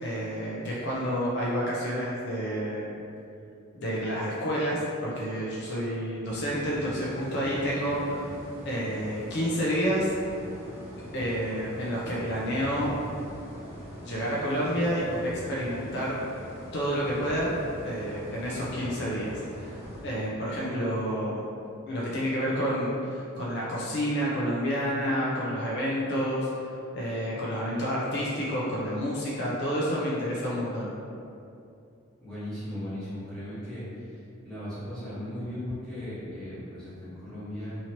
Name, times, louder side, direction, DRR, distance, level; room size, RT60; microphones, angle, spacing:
voice 1, 0.0-3.0 3.7-8.3 8.6-10.1 11.1-12.9 14.0-16.2 16.7-17.5 17.8-19.7 20.0-21.4 21.9-26.5 26.9-30.9, equal, 55° left, -6 dB, 0.5 m, -29 dB
sound 1, 6.2-20.0, equal, 15° right, 0.8 m, -43 dB
voice 2, 32.2-37.8, left 1 dB, 5° left, -14 dB, 1.3 m, -37 dB
2.9 x 2.7 x 2.9 m, 2.6 s
head